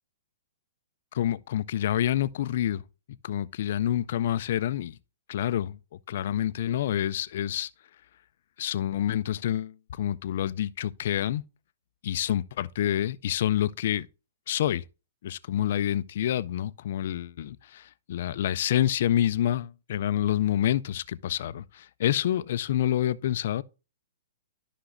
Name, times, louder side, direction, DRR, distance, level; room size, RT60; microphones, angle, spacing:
voice 1, 1.1-2.8 3.2-5.0 5.3-5.8 6.1-7.7 8.6-11.4 12.0-14.1 14.5-14.8 15.2-23.6, left 11 dB, 50° left, 0.3 m, -27 dB
11.5 x 5.8 x 2.5 m
hypercardioid pair, 165°, 0 cm